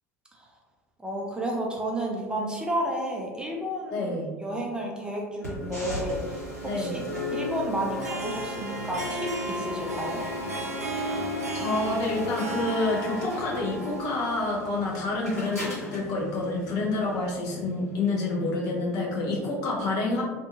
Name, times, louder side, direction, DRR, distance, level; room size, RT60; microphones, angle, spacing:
voice 1, 1.0-6.4 6.6-7.0 7.3-10.2, right 1 dB, 10° right, -1 dB, 0.4 m, -31 dB
voice 2, 3.9-4.2 6.6-6.9 11.5-20.2, left 2 dB, 50° left, -2 dB, 0.7 m, -28 dB
sound 1, 5.4-17.4, left 1 dB, 85° left, 1.0 m, -37 dB
Harp, 7.8-15.2, right 1 dB, 75° right, 0.4 m, -35 dB
2.6 x 2.5 x 2.4 m, 1.3 s
figure-of-eight pair, 70°, 8 cm